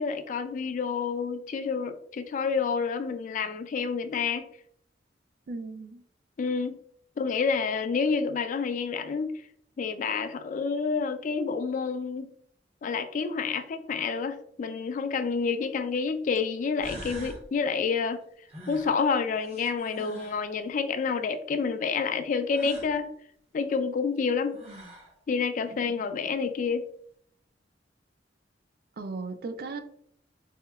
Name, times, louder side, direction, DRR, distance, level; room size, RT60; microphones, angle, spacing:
voice 1, 0.0-4.5 6.4-6.8 7.2-9.3 9.8-12.3 12.8-18.2 18.7-23.1 23.5-24.6 25.3-26.9, left 5 dB, 45° left, 9 dB, 0.3 m, -29 dB
voice 2, 5.5-6.0 25.9-26.1 29.0-29.8, right 3 dB, 55° right, 8 dB, 0.4 m, -37 dB
sound 1, 15.3-15.4 16.4-16.5 16.8-17.4 18.5-20.5 22.5-22.9 24.2-24.3 24.5-25.1, equal, 35° right, 0.8 m, -44 dB
4.3 x 2.8 x 2.3 m, 0.66 s
head